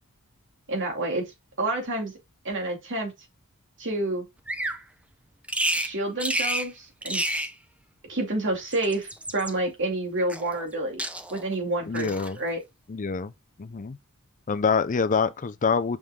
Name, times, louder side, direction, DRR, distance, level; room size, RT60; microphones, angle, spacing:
voice 1, 0.7-1.3 1.6-2.1 2.4-3.1 3.8-4.2 5.8-7.5 8.1-11.0 11.3-12.1 12.4-12.6, right 2 dB, 55° right, 2.6 m, -29 dB
Bird vocalization bird call bird song, 4.5-4.8 5.5-5.9 6.2-6.7 7.0-7.5 8.5-9.5 10.3-10.7 11.0-11.5 11.9-12.3, right 1 dB, 5° right, 0.7 m, -29 dB
voice 2, 11.9-12.4 12.9-13.3 13.6-14.0 14.5-16.0, left 5 dB, 35° left, 0.5 m, -25 dB
6.2 x 5.4 x 3.6 m
head